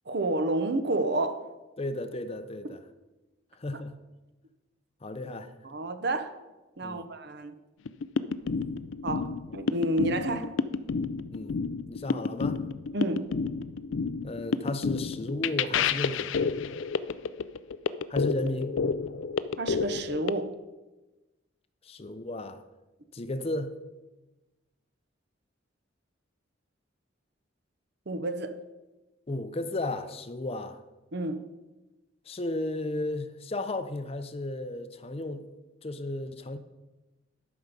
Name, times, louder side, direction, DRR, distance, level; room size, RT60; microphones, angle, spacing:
voice 1, 0.1-1.5 3.7-3.8 5.6-6.4 6.8-7.5 9.0-10.6 12.9-13.2 19.6-20.6 28.1-28.6 31.1-31.4, right 2 dB, 60° right, 0.8 m, -30 dB
voice 2, 1.8-2.8 3.6-4.0 5.0-5.5 6.8-7.0 11.3-11.6 11.9-12.6 14.2-16.4 18.1-18.8 21.8-22.6 23.1-23.7 29.3-30.8 32.3-35.5 35.8-36.6, left 2 dB, 30° left, 0.6 m, -34 dB
sound 1, 7.9-20.3, left 5 dB, 80° left, 0.4 m, -30 dB
11.5 x 6.0 x 5.2 m
head